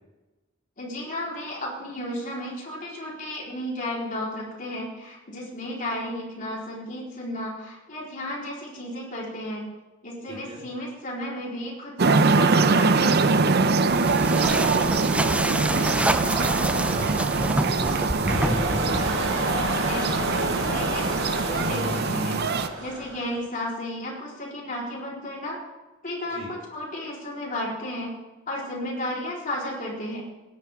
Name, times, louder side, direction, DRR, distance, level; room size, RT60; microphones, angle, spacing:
voice 1, 0.8-9.7 10.0-13.3 19.9-25.6 26.0-28.1 28.5-30.2, left 1 dB, 40° left, -4 dB, 4.0 m, -33 dB
voice 2, 10.3-10.6 14.4-17.2 17.6-19.3 26.3-26.5, equal, 30° right, -4 dB, 4.1 m, -37 dB
sound 1, 12.0-22.7, right 4 dB, 50° right, 0.6 m, -23 dB
moving through bushes, 13.9-19.4, right 1 dB, 5° right, 0.4 m, -28 dB
sound 2, 18.2-23.4, right 1 dB, 75° right, 5.4 m, -29 dB
17.0 x 10.5 x 3.6 m, 1.1 s
head